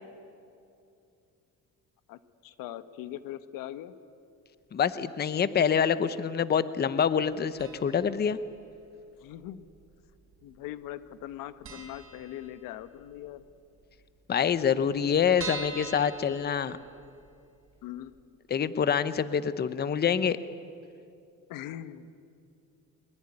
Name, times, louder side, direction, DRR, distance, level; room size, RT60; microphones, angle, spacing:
voice 1, 2.1-3.9 9.2-9.6 10.4-13.4 17.8-18.3 21.5-22.1, left 12 dB, 85° left, 12 dB, 1.2 m, -41 dB
voice 2, 4.7-8.4 14.3-16.8 18.5-20.4, left 7 dB, 30° left, 14 dB, 0.8 m, -26 dB
sound 1, 7.6-8.1 8.4-8.5 9.4-10.1 10.4-10.6 10.8-10.9 11.3-11.4 11.6-13.0 13.3-13.4 13.7-13.8 14.0-14.1 14.6-17.2 17.7-17.8 18.1-18.2, right 3 dB, 40° right, 5.5 m, -42 dB
22.5 x 22.5 x 9.8 m, 2.6 s
cardioid pair, 125°, 32 cm